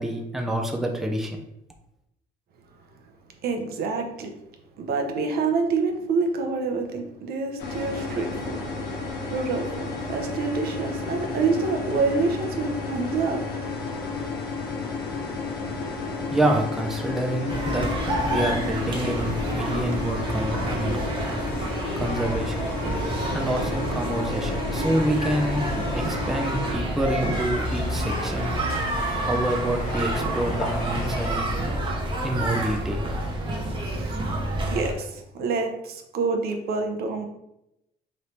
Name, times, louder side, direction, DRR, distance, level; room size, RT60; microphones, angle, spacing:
voice 1, 0.0-1.4 16.3-17.9 18.2-21.0 21.6-21.7 22.0-22.7 23.3-28.6 29.1-31.5 32.2-33.1, right 1 dB, ahead, 1 dB, 0.5 m, -27 dB
voice 2, 3.4-4.3 4.8-8.6 9.3-13.4 33.8-34.2 34.7-37.2, right 4 dB, 65° right, 4 dB, 0.7 m, -27 dB
sound 1, 7.6-26.7, left 4 dB, 80° left, 1.1 m, -32 dB
sound 2, 17.5-34.9, right 1 dB, 30° right, 0.9 m, -28 dB
sound 3, 25.1-31.4, left 2 dB, 50° left, 1.0 m, -36 dB
3.2 x 2.7 x 4.4 m, 0.84 s
cardioid pair, 110°, 17 cm